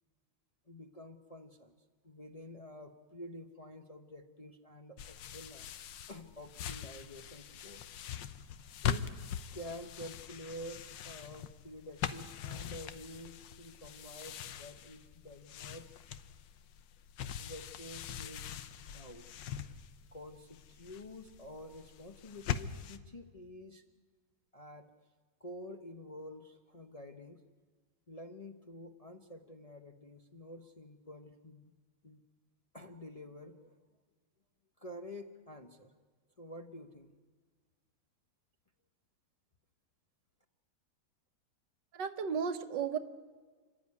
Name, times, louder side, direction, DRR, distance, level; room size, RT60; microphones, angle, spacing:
voice 1, 0.7-1.7 2.0-5.7 6.1-7.8 8.8-9.1 9.5-15.9 17.4-19.3 20.1-23.8 24.5-24.9 25.4-27.4 28.1-31.7 32.0-32.2 32.7-33.8 34.8-35.9 36.4-37.1, left 1 dB, 30° left, 4 dB, 0.8 m, -49 dB
sound 1, 5.0-23.0, left 9 dB, 85° left, 1.5 m, -42 dB
voice 2, 41.9-43.0, right 6 dB, 75° right, 9 dB, 1.7 m, -34 dB
29.0 x 12.0 x 9.6 m, 1.4 s
omnidirectional pair, 1.9 m